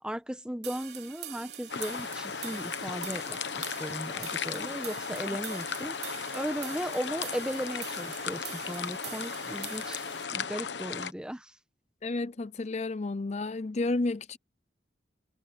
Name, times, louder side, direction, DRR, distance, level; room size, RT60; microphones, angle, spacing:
voice 1, 0.0-10.0 10.3-11.5, equal, 5° right, 1.2 m, -37 dB
sound 1, 0.6-10.2, right 11 dB, 70° right, 3.8 m, -44 dB
sound 2, 1.7-11.1, left 6 dB, 85° left, 1.0 m, -36 dB
voice 2, 12.0-14.4, left 2 dB, 40° left, 0.5 m, -31 dB
head